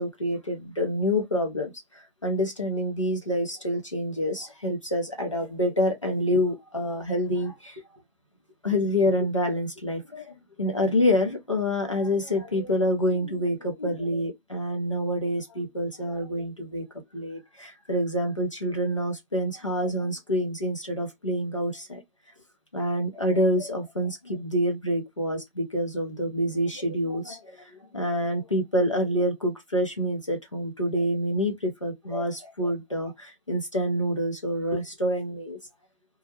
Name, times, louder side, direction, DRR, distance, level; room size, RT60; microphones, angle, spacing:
voice 1, 0.0-7.8 8.6-16.8 17.1-22.0 22.7-35.6, equal, 30° left, 0.6 m, -27 dB
2.2 x 2.1 x 2.7 m
figure-of-eight pair, 165°, 30 cm